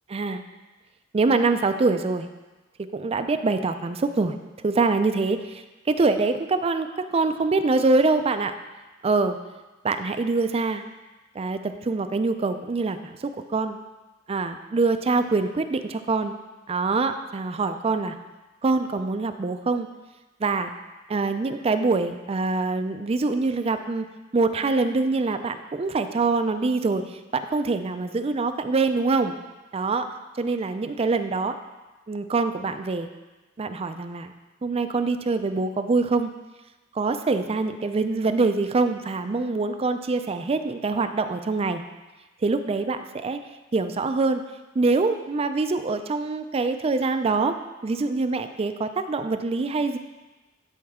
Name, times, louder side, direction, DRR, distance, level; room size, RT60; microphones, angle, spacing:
voice 1, 0.1-0.4 1.1-2.3 2.8-4.3 4.6-8.5 9.0-9.4 9.8-10.8 11.3-13.8 14.3-16.3 16.7-18.2 18.6-19.9 20.4-20.7 21.1-24.1 24.3-29.3 29.7-31.6 32.1-33.1 33.6-34.3 34.6-36.3 36.9-41.8 42.4-43.4 43.7-44.4 44.7-47.6 47.8-50.0, right 3 dB, 30° right, 8 dB, 0.4 m, -24 dB
12.5 x 4.2 x 3.6 m, 1.1 s
head